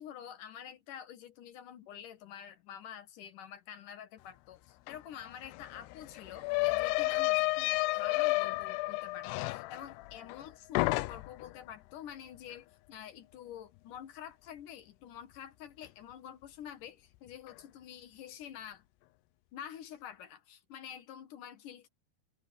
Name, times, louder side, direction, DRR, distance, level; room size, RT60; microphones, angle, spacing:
voice 1, 0.0-18.8 19.5-21.9, left 9 dB, 60° left, 2.5 m, -48 dB
sound 1, 4.9-5.0 5.2-10.5 10.8-11.5, left 21 dB, 85° left, 2.7 m, -31 dB
omnidirectional pair, 4.7 m